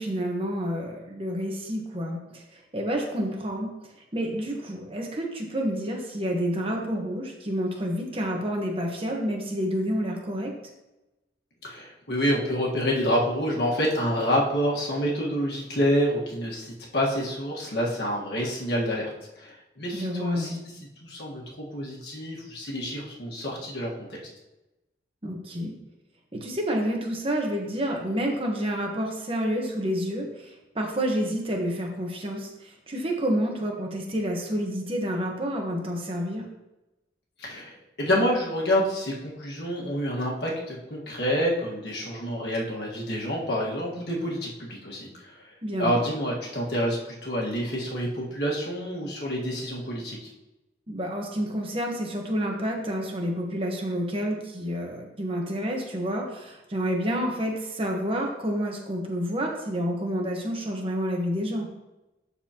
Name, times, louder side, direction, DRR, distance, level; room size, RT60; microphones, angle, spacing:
voice 1, 0.0-3.7 4.1-10.6 19.9-20.6 25.2-25.7 26.3-32.5 32.9-36.5 45.6-46.1 50.9-61.7, equal, 30° right, 1 dB, 1.2 m, -29 dB
voice 2, 11.6-20.6 21.0-24.2 37.4-45.5 45.8-50.3, equal, 65° left, -3 dB, 1.6 m, -28 dB
12.5 x 4.1 x 2.9 m, 1.0 s
head